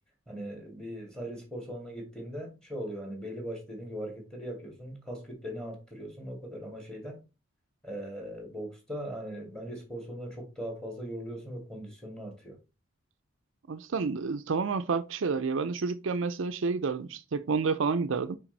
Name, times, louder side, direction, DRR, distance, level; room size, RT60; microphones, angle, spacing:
voice 1, 0.3-7.2 7.8-12.6, equal, 5° left, 2.3 m, -39 dB
voice 2, 13.7-18.4, right 4 dB, 65° right, 0.5 m, -29 dB
5.9 x 5.1 x 4.0 m
head